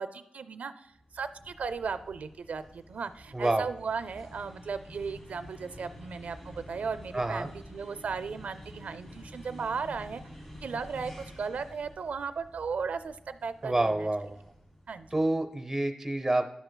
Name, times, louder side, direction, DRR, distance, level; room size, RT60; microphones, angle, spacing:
voice 1, 0.0-10.2 10.6-14.1 14.9-15.1, right 5 dB, 85° right, 12 dB, 0.4 m, -36 dB
sound 1, 0.9-15.4, equal, 30° left, 2.4 m, -49 dB
voice 2, 3.3-3.6 7.1-7.5 13.6-14.4 15.1-16.6, right 2 dB, 15° right, 6 dB, 0.7 m, -28 dB
11.0 x 8.0 x 2.2 m, 0.78 s
wide cardioid pair, 160°, 2 cm